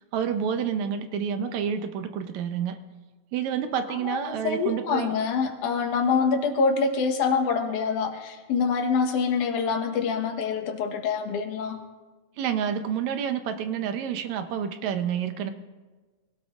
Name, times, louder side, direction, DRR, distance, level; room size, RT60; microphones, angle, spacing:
voice 1, 0.1-2.8 3.3-5.1 12.4-15.5, right 8 dB, 75° right, 8 dB, 2.0 m, -29 dB
voice 2, 4.1-11.8, left 5 dB, 80° left, 4 dB, 2.7 m, -25 dB
25.5 x 17.5 x 2.5 m, 1.3 s
omnidirectional pair, 3.5 m